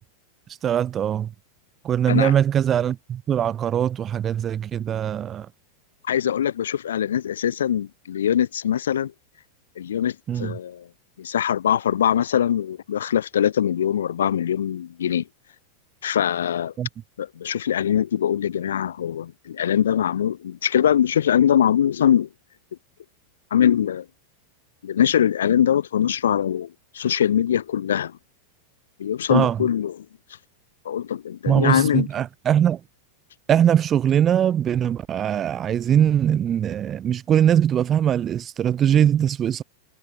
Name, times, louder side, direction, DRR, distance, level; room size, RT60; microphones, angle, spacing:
voice 1, 0.6-1.3 1.8-5.5 10.3-10.6 16.8-16.9 29.3-29.6 31.5-32.8 33.5-39.6, right 9 dB, 25° right, 0.5 m, -21 dB
voice 2, 6.0-9.1 9.8-10.9 11.2-15.2 16.0-16.7 17.2-22.3 23.5-24.1 24.8-28.2 29.0-30.0 30.9-32.1, left 9 dB, 65° left, 0.4 m, -22 dB
figure-of-eight pair, 90°, 0 cm